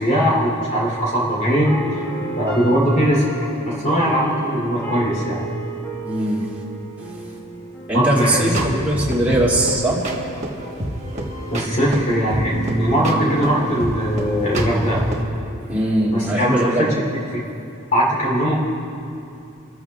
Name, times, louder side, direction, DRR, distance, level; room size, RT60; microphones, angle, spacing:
voice 1, 0.0-2.0 2.4-3.3 3.6-5.4 7.9-8.5 11.5-12.5 12.8-15.1 16.1-16.8 17.9-18.5, equal, 40° left, -4 dB, 3.5 m, -20 dB
sound 1, 1.7-9.7, right 3 dB, 10° left, 3.3 m, -34 dB
voice 2, 6.0-6.4 7.0-7.1 7.9-10.0 15.7-16.9, right 1 dB, 5° right, -7 dB, 2.7 m, -20 dB
sound 2, 8.2-15.2, right 1 dB, 30° right, 1.5 m, -28 dB
30.0 x 14.0 x 2.5 m, 2.7 s
head